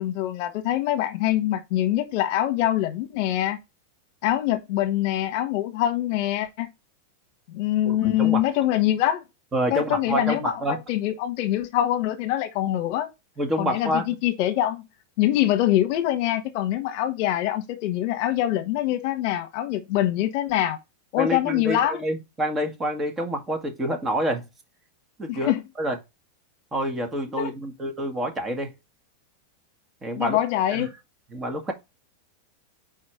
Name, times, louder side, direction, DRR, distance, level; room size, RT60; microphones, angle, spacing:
voice 1, 0.0-3.6 4.2-6.7 7.5-9.2 9.7-10.6 10.9-13.1 13.6-14.8 15.2-20.8 21.1-22.0 25.3-25.6 27.4-27.5 30.2-30.9, left 13 dB, 55° left, 1.1 m, -24 dB
voice 2, 7.8-8.4 9.5-10.8 13.4-14.1 21.2-24.5 25.2-25.5 25.8-26.0 26.7-28.7 30.0-30.4 30.7-30.9 31.3-31.7, right 1 dB, 20° right, 1.7 m, -27 dB
4.8 x 4.3 x 5.0 m
hypercardioid pair, 110°, 0 cm